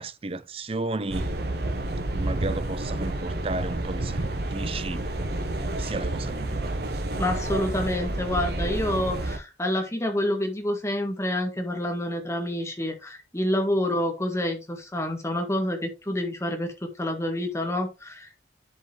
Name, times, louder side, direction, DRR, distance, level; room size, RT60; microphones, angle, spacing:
voice 1, 0.0-1.3 2.1-5.1 5.8-6.7, right 2 dB, 30° right, 0.5 m, -33 dB
sound 1, 1.1-9.4, right 1 dB, 55° right, 1.0 m, -29 dB
voice 2, 7.2-18.3, left 1 dB, 15° left, 1.6 m, -28 dB
10.5 x 4.8 x 3.3 m
head